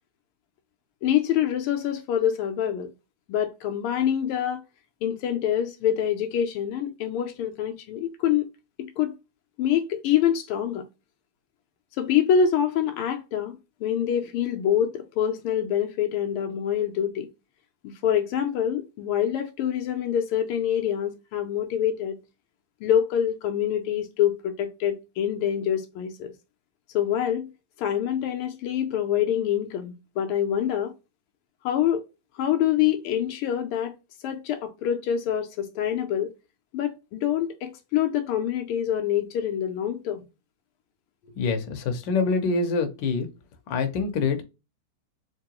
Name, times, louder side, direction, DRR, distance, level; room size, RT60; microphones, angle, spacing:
voice 1, 1.0-2.9 3.3-4.6 5.0-8.5 8.8-9.1 9.6-10.8 12.0-17.3 17.8-22.2 22.8-26.3 26.9-27.5 27.8-30.9 31.6-32.0 32.4-33.9 34.2-36.3 36.7-40.2, left 9 dB, 80° left, 1.5 m, -25 dB
voice 2, 41.4-43.3 43.7-44.4, left 4 dB, 65° left, 1.3 m, -25 dB
3.8 x 3.0 x 2.9 m
omnidirectional pair, 2.4 m